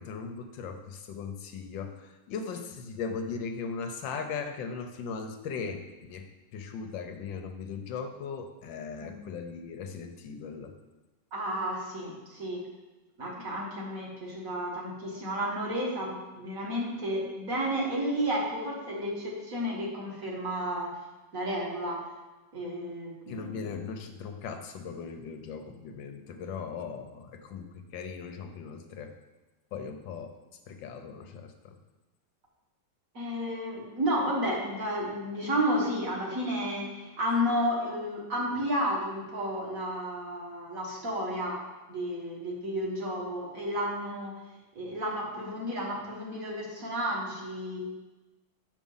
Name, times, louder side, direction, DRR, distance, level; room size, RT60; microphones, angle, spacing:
voice 1, 0.0-5.8 6.1-10.7 23.3-29.1 29.7-30.3 30.7-31.7, left 5 dB, 80° left, 6 dB, 1.5 m, -38 dB
voice 2, 11.3-12.6 13.2-21.0 21.3-22.0 22.5-23.7 33.1-41.6 41.9-44.4 44.8-47.8, equal, 45° right, -3 dB, 1.9 m, -32 dB
7.4 x 5.3 x 5.5 m, 1.1 s
omnidirectional pair, 2.1 m